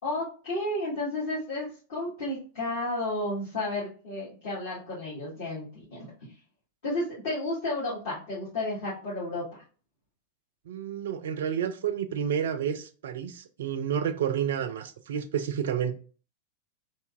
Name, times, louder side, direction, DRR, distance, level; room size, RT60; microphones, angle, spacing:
voice 1, 0.0-6.1 6.8-9.6, left 2 dB, 55° left, 1.6 m, -32 dB
voice 2, 10.7-15.9, right 8 dB, 60° right, 0.4 m, -30 dB
3.4 x 2.8 x 2.2 m
figure-of-eight pair, 90°, 0 cm